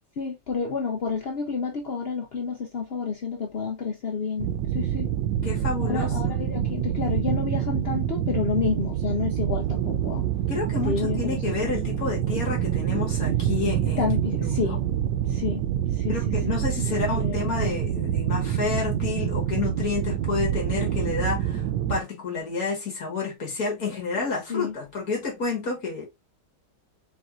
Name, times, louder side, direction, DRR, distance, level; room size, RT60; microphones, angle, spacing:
voice 1, 0.2-5.1 5.8-10.3 10.8-11.7 14.0-14.8 15.3-15.6 15.9-17.4 24.1-24.2 24.5-24.7, left 5 dB, 75° left, 0.5 m, -30 dB
sound 1, 4.4-22.0, right 10 dB, 85° right, 1.3 m, -26 dB
voice 2, 5.4-6.4 10.5-14.8 16.1-26.1, left 4 dB, 50° left, 2.0 m, -30 dB
4.4 x 4.0 x 2.4 m
omnidirectional pair, 2.0 m